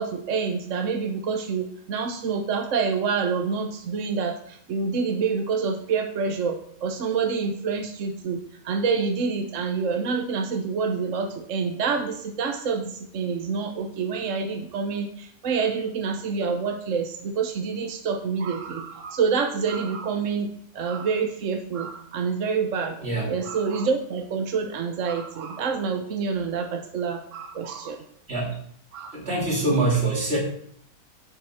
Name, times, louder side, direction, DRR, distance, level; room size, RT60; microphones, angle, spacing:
voice 1, 0.0-8.4 8.6-20.5 20.7-23.0 23.3-28.0 28.9-29.1, right 5 dB, 60° right, 4 dB, 1.2 m, -27 dB
voice 2, 29.1-30.4, right 2 dB, 45° right, -3 dB, 3.0 m, -24 dB
7.9 x 7.1 x 5.8 m, 0.66 s
omnidirectional pair, 1.6 m